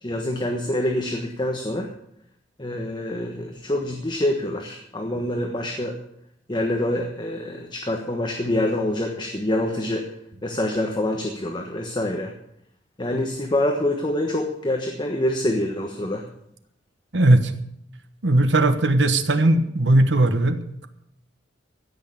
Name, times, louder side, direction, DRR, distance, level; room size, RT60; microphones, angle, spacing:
voice 1, 0.0-1.9 2.6-6.0 6.5-10.1 10.4-12.3 13.0-16.2, left 1 dB, 25° left, 2 dB, 1.3 m, -26 dB
voice 2, 17.1-17.5 18.2-20.9, right 2 dB, 75° right, 9 dB, 1.2 m, -18 dB
15.5 x 6.6 x 8.4 m, 0.74 s
head